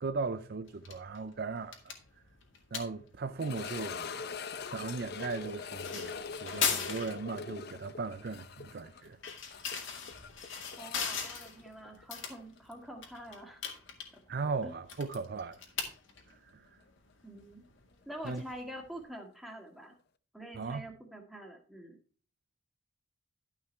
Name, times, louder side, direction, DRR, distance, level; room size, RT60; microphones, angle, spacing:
voice 1, 0.0-1.8 2.7-4.1 4.6-6.1 6.4-9.2 14.3-15.6 16.3-16.7 18.2-18.4 20.6-20.9, right 4 dB, 50° right, 0.5 m, -37 dB
sound 1, 0.6-19.0, left 6 dB, 70° left, 2.1 m, -41 dB
sound 2, 3.4-12.3 12.6-12.7 13.3-13.4 16.0-16.1, left 5 dB, 50° left, 0.6 m, -43 dB
voice 2, 10.7-13.6 14.6-14.7 17.2-17.6 18.0-19.9 20.3-22.0, equal, ahead, 1.8 m, -46 dB
12.0 x 5.7 x 4.5 m
head